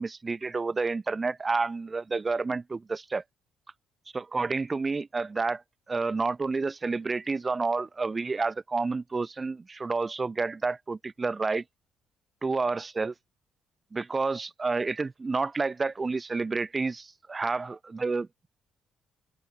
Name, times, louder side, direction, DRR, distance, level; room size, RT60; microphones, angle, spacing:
voice 1, 0.0-3.2 4.1-5.6 5.9-11.6 12.4-13.1 13.9-18.3, right 4 dB, 20° right, 1.8 m, -29 dB
open air
cardioid pair, 160°, 0 cm